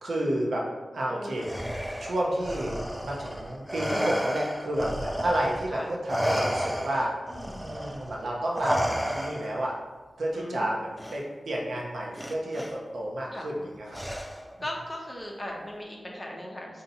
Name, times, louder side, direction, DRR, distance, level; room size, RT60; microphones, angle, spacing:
voice 1, 0.0-0.6 0.9-1.5 2.0-7.1 7.6-9.7 10.2-14.0, right 1 dB, 70° right, -3 dB, 0.7 m, -30 dB
voice 2, 1.1-1.5 5.7-5.9 7.3-7.7 10.3-10.8 13.3-13.5 14.6-16.8, left 1 dB, 15° left, -1 dB, 0.7 m, -38 dB
Respiratory sounds, 1.4-5.7 6.1-9.7 11.0-11.2 12.2-12.7 13.9-14.6, equal, ahead, 0.3 m, -32 dB
5.4 x 2.7 x 2.7 m, 1.3 s
wide cardioid pair, 130°, 0 cm